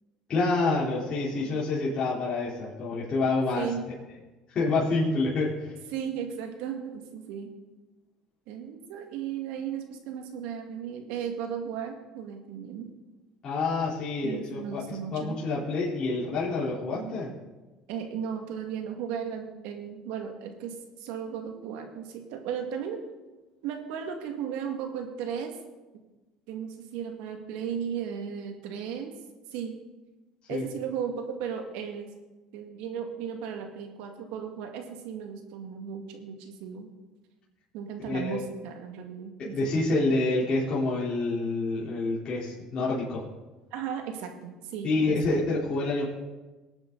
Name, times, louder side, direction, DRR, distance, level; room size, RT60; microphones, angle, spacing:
voice 1, 0.3-3.7 4.5-5.7 13.4-17.3 30.5-30.7 38.1-38.4 39.4-43.2 44.8-46.0, left 3 dB, 45° left, -7 dB, 3.8 m, -27 dB
voice 2, 5.9-7.5 8.5-12.9 14.2-15.4 16.9-17.2 17.9-23.0 23.6-25.6 26.5-29.1 29.5-29.7 30.5-32.1 32.5-36.9 37.7-40.0 43.7-45.2, right 7 dB, 75° right, 4 dB, 2.0 m, -36 dB
19.0 x 8.8 x 4.0 m, 1.2 s
supercardioid pair, 90°, 2 cm